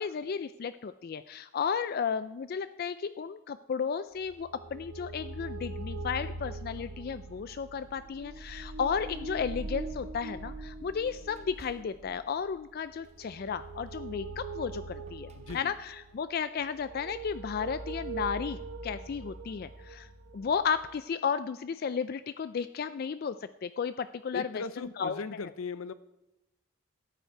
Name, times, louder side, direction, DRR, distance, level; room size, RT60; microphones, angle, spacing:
voice 1, 0.0-25.2, left 6 dB, 45° left, 13 dB, 0.3 m, -34 dB
sound 1, 4.2-21.0, right 2 dB, 90° right, 1.1 m, -42 dB
sound 2, 7.9-8.1 8.8-10.1 10.6-16.2, right 2 dB, 30° right, 1.0 m, -59 dB
voice 2, 15.3-15.7 24.3-25.9, left 4 dB, 85° left, 14 dB, 0.6 m, -38 dB
13.5 x 9.2 x 4.5 m, 0.96 s
head